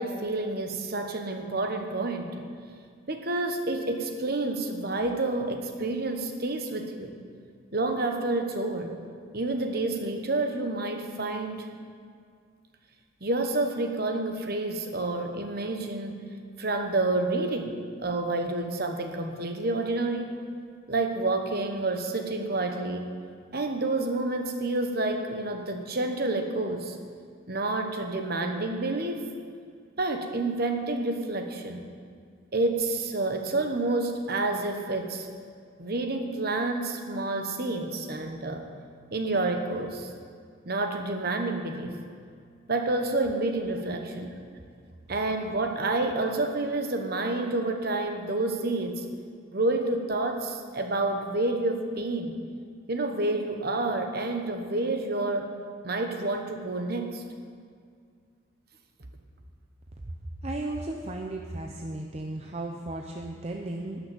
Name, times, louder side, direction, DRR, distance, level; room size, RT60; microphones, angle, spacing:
voice 1, 0.0-2.4 3.1-7.2 7.7-8.9 9.3-11.7 13.2-16.2 16.6-20.3 20.9-23.1 23.5-27.0 27.5-29.3 30.0-31.9 32.5-35.3 35.8-38.6 39.1-40.1 40.7-42.0 42.7-44.4 45.1-49.0 49.5-52.3 52.9-55.5 55.8-57.2, right 2 dB, 50° right, 5 dB, 1.1 m, -29 dB
voice 2, 60.4-64.0, right 2 dB, 30° right, 1 dB, 0.6 m, -35 dB
12.0 x 6.1 x 9.4 m, 2.2 s
head